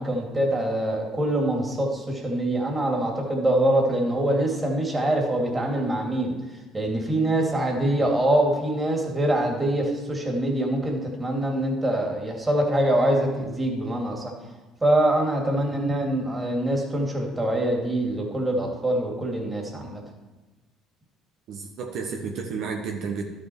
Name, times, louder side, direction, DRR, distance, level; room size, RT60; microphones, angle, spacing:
voice 1, 0.0-6.3 6.7-14.3 14.8-20.0, right 1 dB, 15° right, 0 dB, 2.5 m, -24 dB
voice 2, 21.5-23.2, right 5 dB, 65° right, 1 dB, 1.2 m, -31 dB
12.0 x 6.4 x 4.6 m, 1.2 s
supercardioid pair, 95°, 0 cm